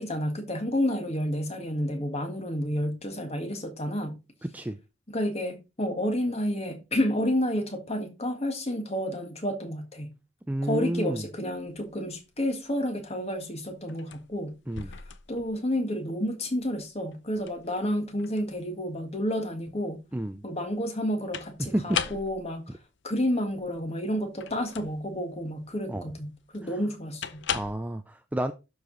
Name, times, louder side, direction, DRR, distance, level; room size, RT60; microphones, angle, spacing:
voice 1, 0.0-4.2 5.1-10.2 10.6-14.6 14.9-15.0 15.3-20.0 20.4-22.8 23.0-27.4, equal, 30° left, 1.6 m, -30 dB
voice 2, 4.4-4.8 10.5-11.2 14.7-14.9 20.1-20.4 21.6-22.0 25.9-26.0 27.5-28.5, right 1 dB, 5° right, 0.4 m, -30 dB
sound 1, 11.5-27.8, left 8 dB, 55° left, 0.7 m, -40 dB
12.0 x 4.8 x 3.9 m
head